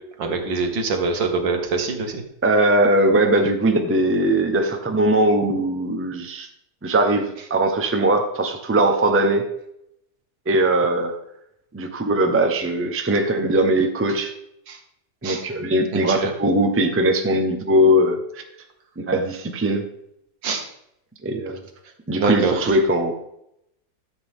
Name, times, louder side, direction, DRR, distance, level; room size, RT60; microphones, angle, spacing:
voice 1, 0.2-2.2 14.7-14.8 15.2-15.4 15.9-16.3 20.4-20.6 22.2-22.7, right 4 dB, 75° right, 5 dB, 2.1 m, -24 dB
voice 2, 2.4-6.5 6.8-9.5 10.5-11.1 11.7-14.3 15.2-18.4 19.0-19.8 21.2-21.6 22.1-23.1, right 1 dB, 10° right, 4 dB, 0.6 m, -20 dB
13.5 x 7.7 x 3.7 m, 0.79 s
omnidirectional pair, 2.0 m